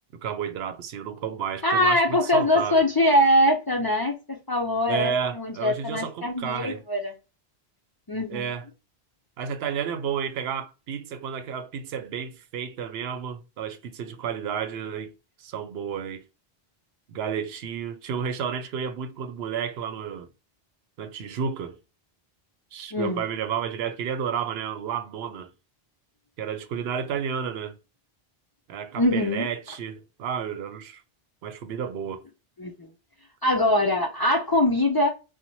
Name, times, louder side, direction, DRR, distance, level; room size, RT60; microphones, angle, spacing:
voice 1, 0.1-2.9 4.9-6.8 8.3-8.7 9.4-15.1 15.4-16.2 17.1-20.3 21.0-21.8 22.7-25.5 26.4-27.8 28.7-31.0 31.4-32.2, right 7 dB, 80° right, 0.8 m, -31 dB
voice 2, 1.6-7.1 8.1-8.5 22.9-23.2 29.0-29.5 32.6-32.9 33.4-35.1, left 1 dB, 40° left, 0.3 m, -23 dB
3.0 x 2.2 x 2.6 m
omnidirectional pair, 1.0 m